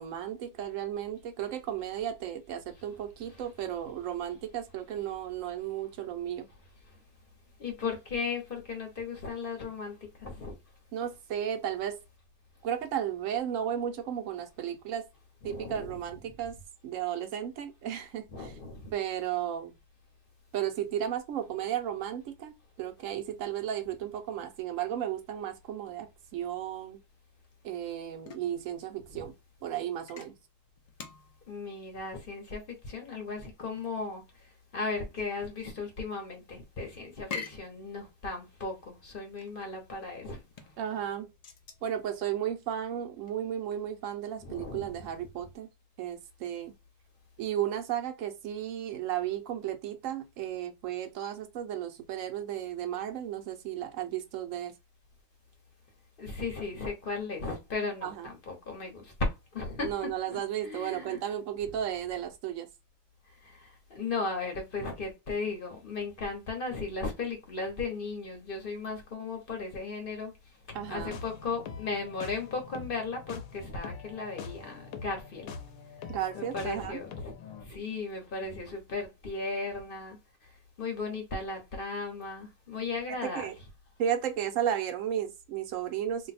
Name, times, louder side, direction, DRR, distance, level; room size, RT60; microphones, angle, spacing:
voice 1, 0.0-6.5 10.9-11.9 12.6-15.0 15.4-16.6 16.8-18.5 18.9-19.7 20.5-22.5 22.8-26.1 26.3-27.0 27.6-29.3 29.6-30.3 40.8-41.3 41.8-45.7 46.0-46.7 47.4-54.7 58.0-58.3 59.8-62.7 70.7-71.2 76.1-77.0 83.3-83.5 84.0-86.3, right 10 dB, 75° right, 1.0 m, -34 dB
voice 2, 7.6-10.5 15.4-16.0 18.3-18.9 29.1-29.3 31.5-34.2 34.7-40.4 44.4-45.1 56.2-61.2 63.4-70.3 70.9-75.5 76.3-77.3 77.6-80.2 80.8-83.5, left 3 dB, 45° left, 0.9 m, -36 dB
sound 1, 27.4-44.0, left 5 dB, 70° left, 0.3 m, -48 dB
sound 2, 70.7-77.7, left 6 dB, 85° left, 1.0 m, -44 dB
2.6 x 2.2 x 4.0 m
omnidirectional pair, 1.4 m